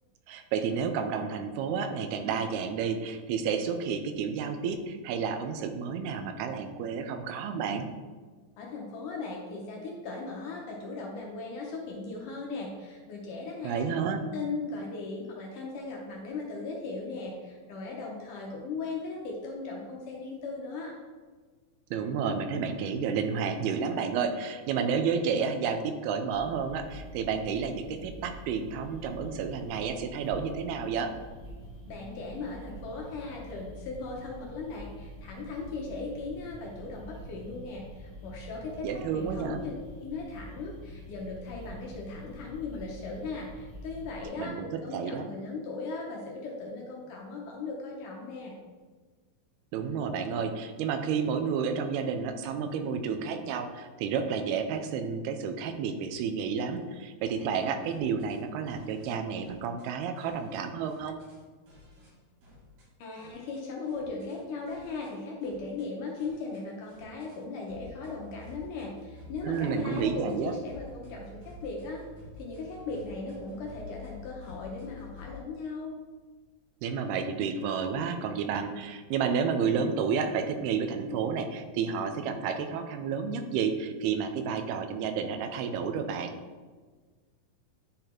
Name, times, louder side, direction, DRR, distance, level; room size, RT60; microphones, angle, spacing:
voice 1, 0.3-7.9 13.6-14.2 21.9-31.1 38.8-39.6 44.4-45.2 49.7-61.2 69.4-70.5 76.8-86.3, right 6 dB, 85° right, 7 dB, 2.6 m, -31 dB
voice 2, 8.6-13.8 14.3-20.9 31.9-39.7 40.0-48.5 63.0-72.0 72.4-75.9, left 3 dB, 70° left, -1 dB, 2.1 m, -38 dB
sound 1, 26.3-44.3, equal, 20° right, 1.8 m, -46 dB
sound 2, 57.2-58.4 58.7-59.1 59.4-59.8 60.2-61.4 61.7-62.1 62.4-62.8 63.2-64.4 64.7-65.1 65.4-65.8 66.2-67.4 67.7-75.4, left 1 dB, 60° right, 3.9 m, -50 dB
10.5 x 4.1 x 4.4 m, 1.4 s
omnidirectional pair, 4.4 m